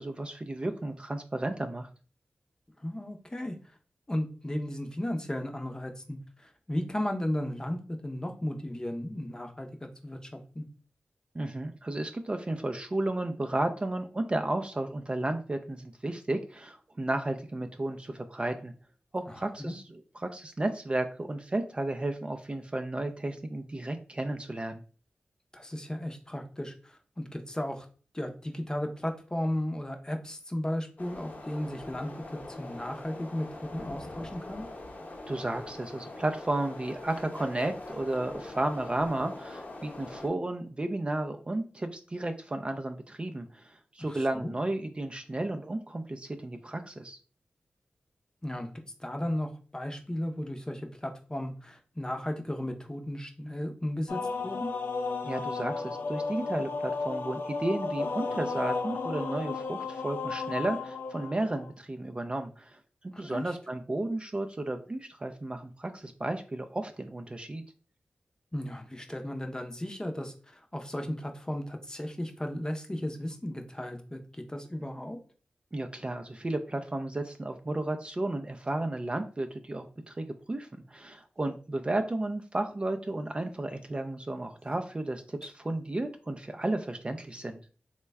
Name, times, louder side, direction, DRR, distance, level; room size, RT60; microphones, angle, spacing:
voice 1, 0.0-1.9 11.3-18.7 19.1-24.8 35.3-47.2 55.2-62.8 63.0-67.6 75.7-87.6, right 2 dB, 30° right, 6 dB, 0.3 m, -33 dB
voice 2, 2.8-3.6 4.1-10.6 19.3-19.7 25.5-27.9 28.1-34.7 44.0-44.5 48.4-48.7 49.0-54.7 63.1-63.6 68.5-75.2, left 1 dB, 20° left, 5 dB, 0.6 m, -35 dB
sound 1, 31.0-40.3, left 2 dB, 50° left, 0.8 m, -43 dB
sound 2, 54.1-61.7, left 4 dB, 75° left, 0.4 m, -33 dB
3.2 x 2.1 x 3.3 m, 0.39 s
cardioid pair, 45°, 4 cm